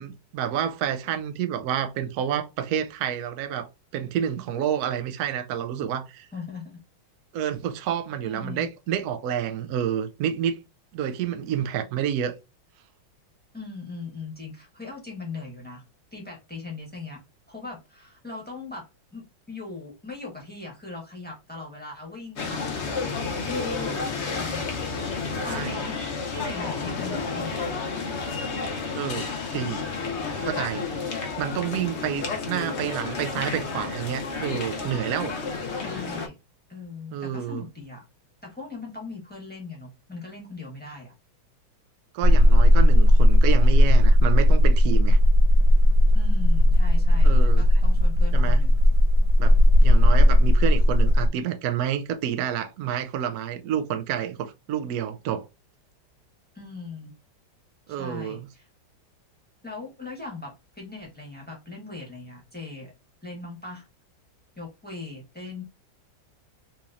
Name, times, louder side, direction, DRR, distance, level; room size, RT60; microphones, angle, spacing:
voice 1, 0.0-6.3 7.3-10.6 10.9-12.3 25.5-25.8 28.9-29.8 30.4-30.9 31.4-35.4 37.1-37.6 42.1-45.2 47.2-47.6 48.3-48.6 49.4-49.6 49.8-55.5 57.9-58.5, right 9 dB, 80° right, 0.8 m, -29 dB
voice 2, 6.3-6.8 8.0-8.7 13.5-15.8 16.1-17.2 17.5-18.9 19.1-24.7 25.4-26.0 26.3-27.7 35.7-36.3 36.7-38.0 38.4-41.1 46.1-48.8 56.5-57.1 57.9-58.7 59.6-62.9 63.2-63.9 64.6-65.6, left 3 dB, 5° left, 0.9 m, -39 dB
sound 1, 22.4-36.3, left 4 dB, 65° left, 0.6 m, -31 dB
sound 2, 42.2-51.3, left 1 dB, 60° right, 1.2 m, -16 dB
4.0 x 2.9 x 2.4 m
omnidirectional pair, 2.1 m